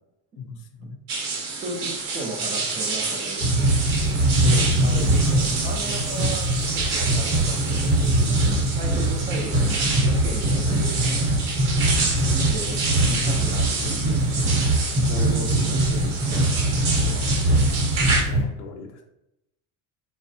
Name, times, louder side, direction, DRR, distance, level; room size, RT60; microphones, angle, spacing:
voice 1, 0.4-1.0 18.3-19.0, left 3 dB, 50° left, 2 dB, 0.5 m, -40 dB
sound 1, 1.1-18.2, right 4 dB, 60° right, 0.8 m, -29 dB
voice 2, 1.3-3.5 4.4-11.3 11.9-14.6 15.1-17.3, right 2 dB, 20° right, 1 dB, 0.4 m, -36 dB
sound 2, 3.4-18.4, right 1 dB, 35° right, 1.0 m, -22 dB
3.3 x 2.1 x 2.6 m, 0.85 s
cardioid pair, 155°, 38 cm